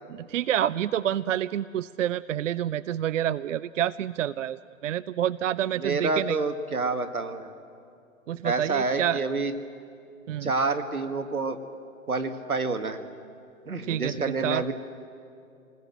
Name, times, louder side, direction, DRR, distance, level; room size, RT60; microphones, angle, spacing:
voice 1, 0.1-6.4 8.3-9.2 10.3-10.5 13.8-14.6, right 11 dB, 60° right, 18 dB, 0.5 m, -28 dB
voice 2, 5.8-7.5 8.4-9.5 10.4-11.6 12.1-13.0 13.7-14.7, right 3 dB, 85° right, 9 dB, 1.8 m, -28 dB
28.0 x 20.0 x 7.6 m, 2.5 s
figure-of-eight pair, 125°, 42 cm